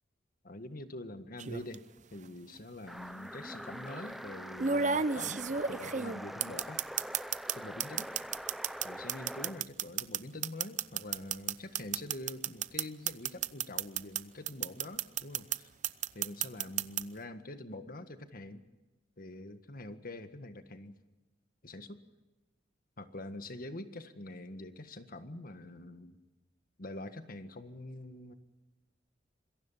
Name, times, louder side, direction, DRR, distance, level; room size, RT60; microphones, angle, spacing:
voice 1, 0.4-1.8 2.1-6.8 7.5-8.1 8.8-15.7 16.1-18.6 19.2-20.9 21.6-22.0 23.0-26.2 26.8-28.3, left 1 dB, 50° left, 9 dB, 1.7 m, -45 dB
sound 1, 1.4-1.7 2.9-3.0 4.6-7.5 7.8-14.2 14.5-15.6 15.8-17.0, right 7 dB, 40° right, 0.7 m, -31 dB
sound 2, 2.9-9.6, equal, ahead, 0.7 m, -44 dB
26.5 x 22.0 x 5.8 m, 1.1 s
head